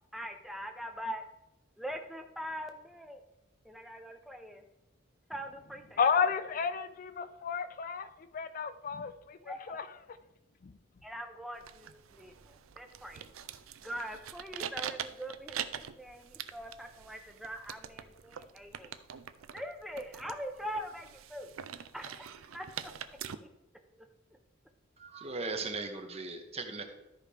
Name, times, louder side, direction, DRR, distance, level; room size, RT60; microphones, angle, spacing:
voice 1, 0.1-1.2 1.8-3.2 3.6-4.6 5.3-6.0 9.4-9.8 11.0-13.3 13.8-18.9 19.5-21.5 21.9-22.3 22.5-22.9 24.0-24.1, equal, ahead, 5 dB, 0.6 m, -42 dB
voice 2, 6.0-9.9 10.6-10.7, left 6 dB, 40° left, 11 dB, 0.4 m, -32 dB
sound 1, 11.5-23.3, right 9 dB, 90° right, 0.5 m, -44 dB
voice 3, 25.0-26.8, right 3 dB, 30° right, 5 dB, 0.9 m, -38 dB
13.5 x 5.0 x 3.3 m, 0.94 s
head